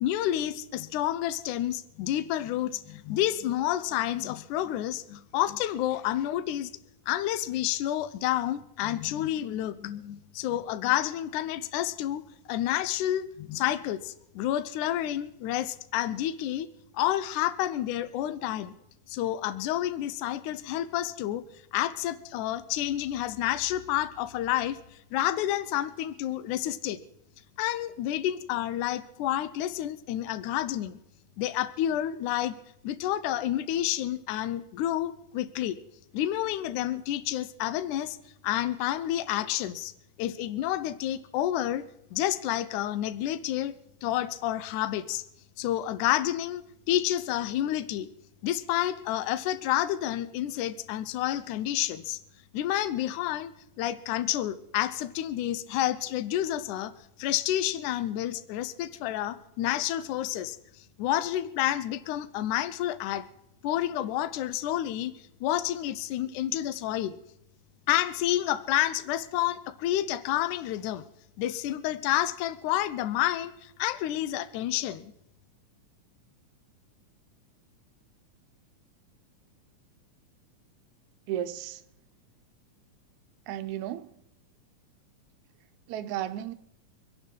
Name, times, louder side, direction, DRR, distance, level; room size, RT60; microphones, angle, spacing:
voice 1, 0.0-6.7 7.1-16.7 16.9-18.7 19.1-21.4 21.7-24.8 25.1-27.0 27.6-31.0 31.4-32.6 32.8-35.8 36.1-38.2 38.4-39.9 40.2-43.8 44.0-45.2 45.6-46.6 46.9-48.1 48.4-52.2 52.5-53.5 53.8-56.9 57.2-60.6 61.0-63.3 63.6-65.1 65.4-67.2 67.9-71.0 71.4-75.1, left 13 dB, 75° left, 2.2 m, -29 dB
voice 2, 81.3-81.8 83.5-84.1 85.9-86.5, right 11 dB, 75° right, 1.9 m, -33 dB
25.5 x 10.5 x 4.5 m
omnidirectional pair, 3.7 m